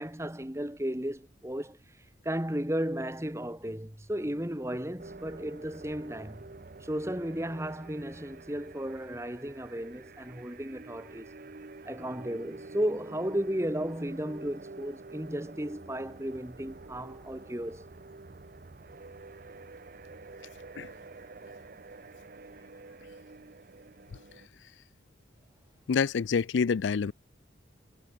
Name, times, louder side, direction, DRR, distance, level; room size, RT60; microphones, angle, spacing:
voice 1, 0.0-1.8 2.2-6.4 6.8-11.3 11.9-17.9, equal, 15° right, 1.7 m, -34 dB
sound 1, 5.0-24.5, right 3 dB, 45° right, 0.7 m, -48 dB
voice 2, 25.9-27.1, left 5 dB, 75° left, 0.4 m, -27 dB
head